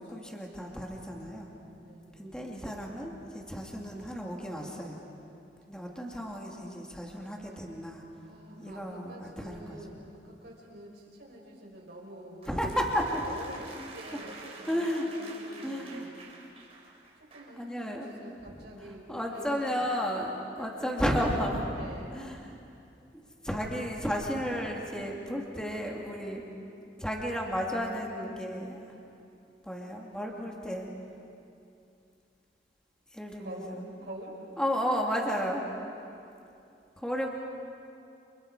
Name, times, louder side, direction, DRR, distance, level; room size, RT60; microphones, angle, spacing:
voice 1, 0.0-1.5 2.2-5.0 5.7-8.0 8.6-9.8 12.4-13.2 14.7-15.1 15.6-16.1 17.6-18.1 18.6-18.7 19.1-21.7 22.1-22.6 23.4-26.5 27.0-28.8 29.6-30.9 33.1-33.8 34.6-35.6 37.0-37.3, equal, 5° left, -1 dB, 2.8 m, -33 dB
voice 2, 1.8-2.5 8.1-12.5 13.2-16.2 17.3-19.9 20.6-20.8 21.7-22.3 33.4-34.3, right 1 dB, 65° right, -2 dB, 5.9 m, -47 dB
sound 1, 12.4-17.6, right 3 dB, 35° right, 3.9 m, -49 dB
30.0 x 30.0 x 5.1 m, 2.6 s
head